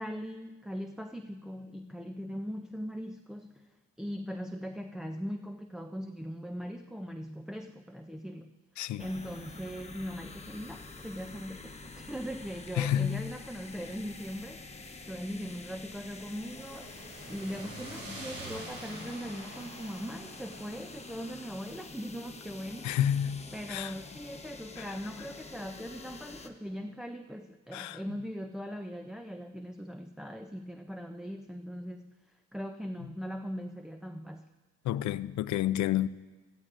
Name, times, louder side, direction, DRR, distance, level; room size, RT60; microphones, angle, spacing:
voice 1, 0.0-3.7 4.0-8.5 9.0-14.6 15.1-17.0 17.3-23.0 23.5-32.1 32.5-34.5, equal, ahead, 0.4 m, -40 dB
voice 2, 8.8-9.1 12.8-13.2 22.8-23.4 23.7-23.9 27.7-28.0 34.9-36.1, left 11 dB, 70° left, 0.5 m, -29 dB
sound 1, 9.0-26.5, left 3 dB, 20° left, 1.0 m, -47 dB
sound 2, 16.3-24.5, right 1 dB, 70° right, 3.7 m, -48 dB
16.5 x 14.0 x 2.5 m
cardioid pair, 90°, 30 cm